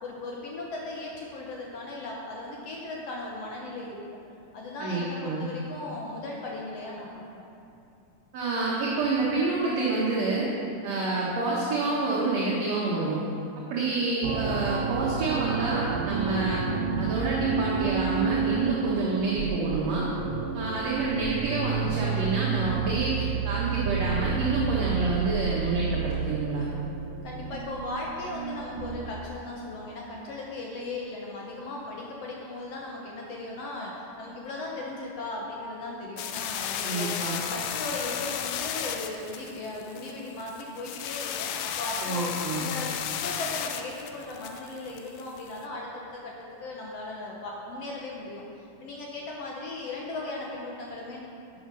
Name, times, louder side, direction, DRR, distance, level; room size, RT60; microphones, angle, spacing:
voice 1, 0.0-4.0 4.5-7.5 27.2-37.1 37.5-46.3 46.6-51.4, left 2 dB, 60° left, -2 dB, 1.9 m, -37 dB
voice 2, 4.8-5.5 8.3-10.5 10.8-13.2 13.6-16.6 17.0-20.1 20.5-26.7 36.8-37.4 42.0-42.6, right 3 dB, 60° right, -5 dB, 2.3 m, -28 dB
sound 1, 14.2-29.3, right 6 dB, 85° right, 2.2 m, -30 dB
sound 2, 36.2-45.6, left 9 dB, 90° left, 2.2 m, -34 dB
11.0 x 7.4 x 6.3 m, 2.7 s
omnidirectional pair, 3.6 m